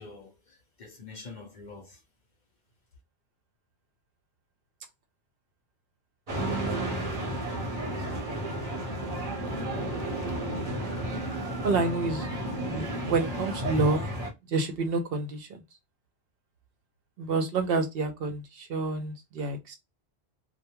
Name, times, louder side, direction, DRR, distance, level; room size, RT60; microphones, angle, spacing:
voice 1, 0.0-2.0, left 3 dB, 50° left, 0.7 m, -46 dB
sound 1, 6.3-14.3, right 1 dB, 40° right, 0.8 m, -32 dB
voice 2, 6.3-7.3 11.6-12.3 12.7-14.0 14.5-15.6 17.2-19.7, right 3 dB, 65° right, 0.7 m, -29 dB
2.2 x 2.1 x 2.9 m
omnidirectional pair, 1.1 m